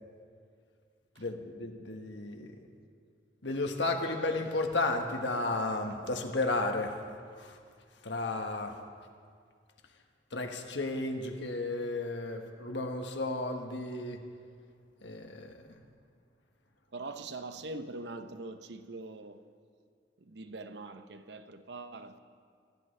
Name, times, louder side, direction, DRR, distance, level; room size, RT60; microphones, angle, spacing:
voice 1, 1.2-2.6 3.4-6.9 7.4-7.6 8.0-8.7 10.3-14.2 15.0-15.5, left 2 dB, 80° left, 1.4 m, -33 dB
voice 2, 16.9-19.5 20.2-22.2, right 2 dB, 70° right, 0.8 m, -43 dB
25.5 x 13.5 x 3.3 m
head